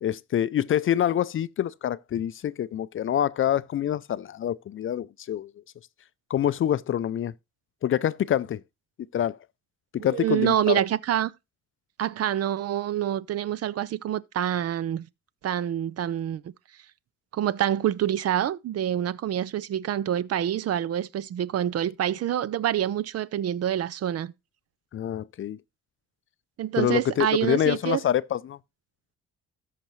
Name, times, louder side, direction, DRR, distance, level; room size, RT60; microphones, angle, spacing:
voice 1, 0.0-5.5 6.3-7.3 7.8-8.6 9.1-9.4 10.0-10.8 24.9-25.6 26.8-28.6, left 10 dB, 45° left, 0.4 m, -26 dB
voice 2, 10.0-11.3 12.0-15.1 15.4-16.4 17.3-24.3 26.6-28.0, right 11 dB, 55° right, 0.6 m, -26 dB
13.5 x 5.9 x 3.1 m
cardioid pair, 90°, 30 cm